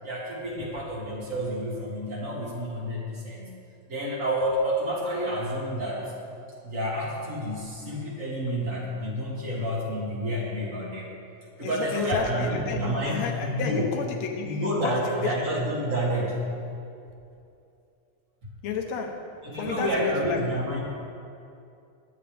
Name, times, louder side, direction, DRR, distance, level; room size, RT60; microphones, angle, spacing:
voice 1, 0.0-3.5 3.9-6.1 6.6-11.1 11.6-13.9 14.4-16.5 19.4-20.8, equal, 25° right, -5 dB, 2.8 m, -29 dB
voice 2, 11.6-15.5 18.6-20.6, left 5 dB, 65° left, 3 dB, 1.9 m, -32 dB
19.5 x 13.0 x 3.5 m, 2.6 s
omnidirectional pair, 4.0 m